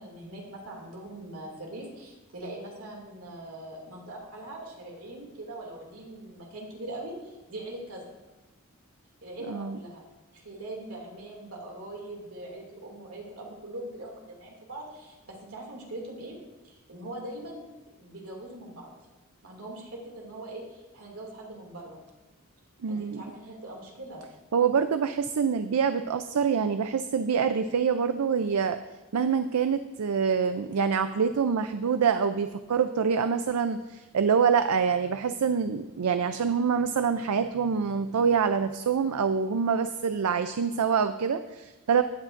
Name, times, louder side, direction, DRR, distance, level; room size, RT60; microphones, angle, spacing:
voice 1, 0.0-8.0 9.2-10.0 10.3-16.4 16.6-17.7 18.0-18.9 19.4-22.0 22.9-24.2, right 1 dB, 75° right, -1 dB, 2.5 m, -41 dB
voice 2, 9.5-9.8 22.8-23.2 24.5-28.8 29.1-42.0, right 6 dB, 90° right, 10 dB, 0.5 m, -26 dB
15.0 x 9.8 x 2.6 m, 1.1 s
head